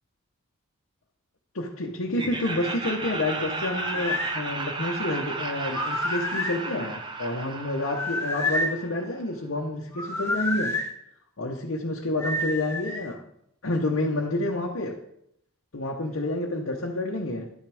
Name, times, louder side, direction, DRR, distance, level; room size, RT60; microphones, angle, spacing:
voice 1, 1.5-10.7 11.4-13.2 13.6-15.0 15.7-17.5, left 1 dB, 65° left, -1 dB, 0.9 m, -29 dB
Laughter, 2.1-9.1, right 3 dB, 20° right, 0.6 m, -34 dB
sound 1, 3.5-4.3 5.7-6.6 7.9-8.8 9.9-10.9 12.2-13.1, left 2 dB, 10° left, 0.9 m, -29 dB
11.5 x 6.0 x 3.5 m, 0.73 s
head